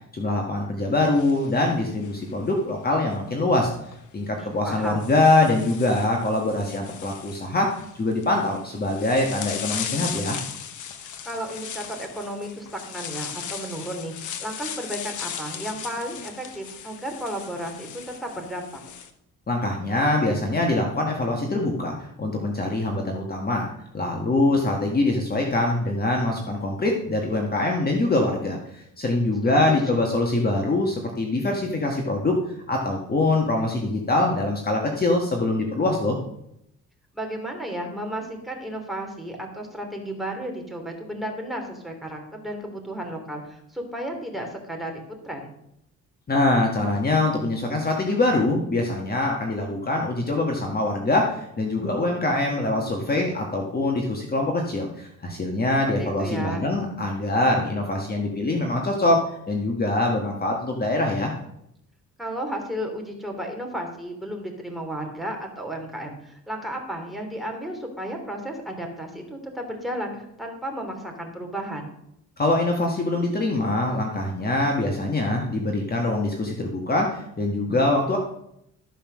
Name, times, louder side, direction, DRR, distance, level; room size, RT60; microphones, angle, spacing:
voice 1, 0.1-3.7 4.1-7.7 7.9-10.4 19.5-23.7 23.9-32.3 32.7-36.2 46.3-61.3 72.4-78.2, left 2 dB, 30° left, 1 dB, 1.7 m, -24 dB
sound 1, 1.0-2.5 3.8-4.0 4.7-19.1, left 8 dB, 75° left, 1.2 m, -37 dB
voice 2, 4.4-5.1 11.2-18.8 29.4-30.1 37.1-44.9 45.2-45.5 56.0-56.6 62.2-71.9, right 1 dB, ahead, 3 dB, 2.9 m, -33 dB
13.0 x 5.5 x 6.3 m, 0.77 s
cardioid pair, 90°, 30 cm